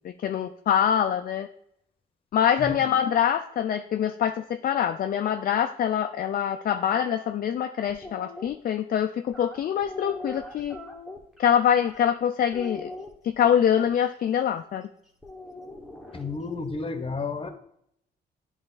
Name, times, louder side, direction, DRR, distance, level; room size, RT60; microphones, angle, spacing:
voice 1, 0.0-1.5 2.3-10.8 11.4-12.9 13.2-14.8, left 9 dB, 50° left, 7 dB, 0.4 m, -24 dB
sound 1, 7.9-8.5 9.3-12.2 12.5-14.0 15.2-16.6, left 2 dB, ahead, 1.4 m, -41 dB
voice 2, 16.1-17.5, left 4 dB, 30° left, 8 dB, 1.0 m, -31 dB
8.7 x 3.1 x 3.9 m, 0.72 s
cardioid pair, 75°, 19 cm